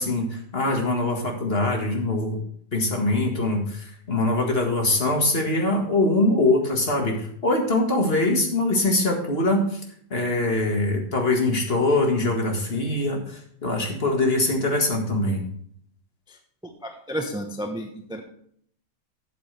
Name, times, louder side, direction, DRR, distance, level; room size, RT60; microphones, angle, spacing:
voice 1, 0.0-2.4 2.7-9.8 10.1-15.4, left 2 dB, 35° left, 2 dB, 1.9 m, -23 dB
voice 2, 16.8-18.2, equal, 5° right, 4 dB, 0.6 m, -31 dB
12.0 x 7.9 x 3.3 m, 0.65 s
omnidirectional pair, 1.8 m